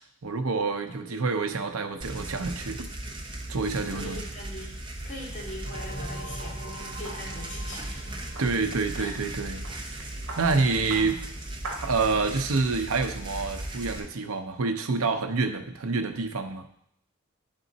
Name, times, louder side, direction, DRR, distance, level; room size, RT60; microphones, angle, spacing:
voice 1, 0.2-2.9 3.5-4.2 8.4-9.7 10.4-11.2 11.8-16.7, right 4 dB, 80° right, 7 dB, 0.7 m, -27 dB
voice 2, 0.9-1.3 3.9-8.0 8.9-9.1, left 1 dB, 35° left, -6 dB, 2.6 m, -42 dB
sound 1, 2.0-14.0, right 1 dB, 20° right, 0.8 m, -37 dB
sound 2, 5.0-12.6, right 2 dB, 60° right, 1.2 m, -45 dB
sound 3, 5.7-10.1, equal, 90° left, 1.3 m, -43 dB
10.0 x 3.7 x 4.0 m, 0.74 s
head